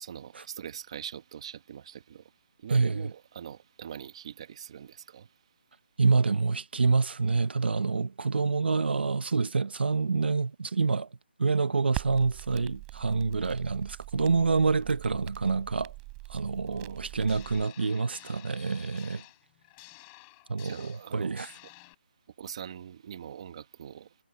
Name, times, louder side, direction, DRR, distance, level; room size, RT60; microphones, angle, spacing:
voice 1, 0.1-5.3 16.6-17.0 20.6-21.4 22.4-24.2, right 9 dB, 30° right, 1.7 m, -43 dB
voice 2, 2.7-3.1 6.0-11.1 11.4-15.9 16.3-19.2 20.5-21.5, right 4 dB, 70° right, 1.2 m, -27 dB
Crackle, 11.9-17.7, right 27 dB, 15° right, 5.0 m, -42 dB
sound 1, 17.3-21.9, left 36 dB, 15° left, 5.0 m, -52 dB
hypercardioid pair, 170°, 6 cm